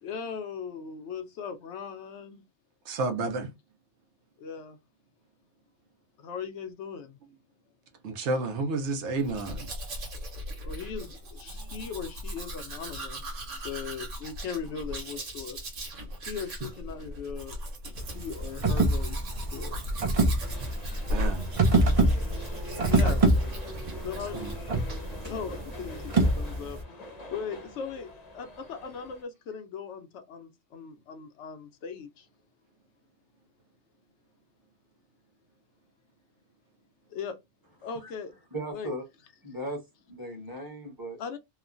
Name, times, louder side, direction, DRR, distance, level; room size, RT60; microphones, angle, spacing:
voice 1, 0.0-2.4 4.4-4.8 6.2-7.2 10.6-15.6 16.3-17.6 18.1-19.8 22.7-23.3 24.0-24.4 25.2-32.3 37.1-37.4 37.8-38.3 38.7-38.9 41.2-41.4, left 6 dB, 75° left, 0.9 m, -39 dB
voice 2, 2.9-3.5 8.0-9.7 21.1-21.5 24.4-24.5, right 3 dB, 70° right, 0.9 m, -30 dB
Domestic sounds home sounds, 9.2-24.6 24.9-25.3, equal, 90° right, 1.3 m, -37 dB
sound 1, 18.0-26.8, right 2 dB, 45° right, 0.5 m, -26 dB
sound 2, 20.4-29.2, left 1 dB, 40° left, 0.8 m, -45 dB
voice 3, 38.5-39.0 39.4-41.2, right 1 dB, 20° right, 1.0 m, -37 dB
3.0 x 2.1 x 2.4 m
omnidirectional pair, 1.2 m